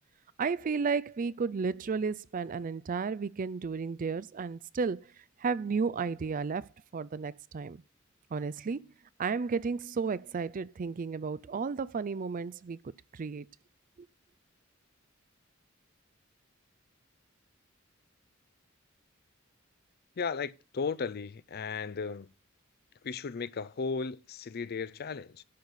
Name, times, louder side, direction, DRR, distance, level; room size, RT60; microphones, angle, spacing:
voice 1, 0.4-5.1 5.4-6.7 6.9-7.8 8.3-8.9 9.2-12.8 13.1-13.5, right 5 dB, 40° right, 0.4 m, -33 dB
voice 2, 20.2-22.3 23.0-25.4, left 5 dB, 50° left, 0.5 m, -35 dB
11.5 x 4.2 x 7.9 m
head